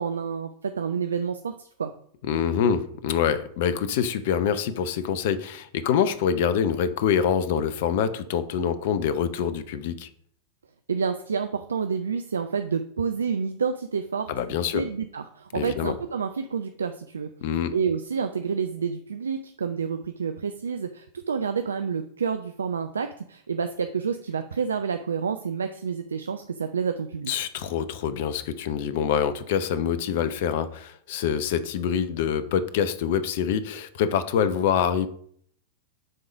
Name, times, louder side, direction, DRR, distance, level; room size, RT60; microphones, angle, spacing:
voice 1, 0.0-1.9 10.9-14.3 14.6-17.3 17.7-27.3, right 6 dB, 70° right, 8 dB, 0.4 m, -29 dB
voice 2, 2.2-10.1 14.3-14.8 15.5-15.9 17.4-17.7 27.3-35.1, left 8 dB, 50° left, 13 dB, 0.7 m, -25 dB
7.8 x 3.8 x 6.2 m, 0.63 s
figure-of-eight pair, 90°, 0 cm